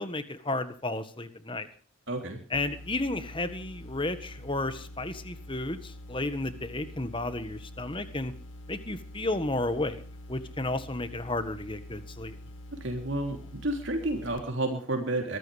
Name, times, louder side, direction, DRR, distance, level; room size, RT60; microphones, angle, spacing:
voice 1, 0.0-1.7 2.5-8.3 8.7-10.0 10.3-12.4, left 2 dB, 25° left, 11 dB, 1.6 m, -32 dB
voice 2, 2.1-2.4 12.8-15.4, right 1 dB, 55° right, 3 dB, 3.4 m, -31 dB
sound 1, 2.5-14.4, left 1 dB, 60° left, 1.8 m, -45 dB
24.0 x 14.0 x 3.4 m, 0.41 s
head